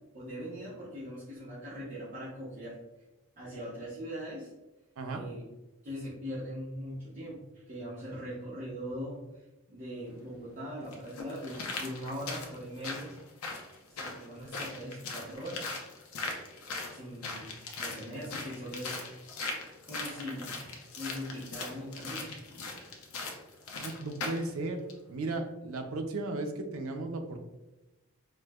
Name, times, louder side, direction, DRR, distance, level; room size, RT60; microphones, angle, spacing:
voice 1, 0.1-2.8 3.4-4.5 5.1-5.4 5.8-9.2 9.7-13.1 13.9-15.8 16.9-19.0 19.9-20.7 21.0-22.6, equal, 35° right, -9 dB, 0.7 m, -41 dB
sound 1, 10.1-10.2 10.9-24.5 24.9-25.0, left 3 dB, 75° left, 0.6 m, -40 dB
voice 2, 23.8-24.8 25.1-27.4, right 2 dB, 70° right, 5 dB, 0.4 m, -35 dB
4.4 x 2.1 x 2.2 m, 1.0 s
head